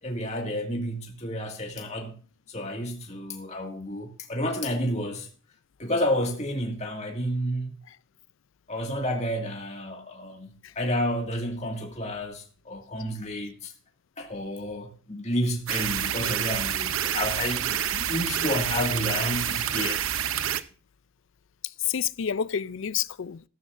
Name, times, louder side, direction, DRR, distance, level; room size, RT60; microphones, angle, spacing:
voice 1, 0.0-2.1 2.5-5.3 5.8-7.7 8.7-13.7 14.2-20.0, equal, 30° left, 2.1 m, -30 dB
sound 1, 15.7-20.6, right 10 dB, 75° right, 0.7 m, -28 dB
voice 2, 21.6-23.5, left 8 dB, 65° left, 0.4 m, -30 dB
14.0 x 13.5 x 2.6 m
head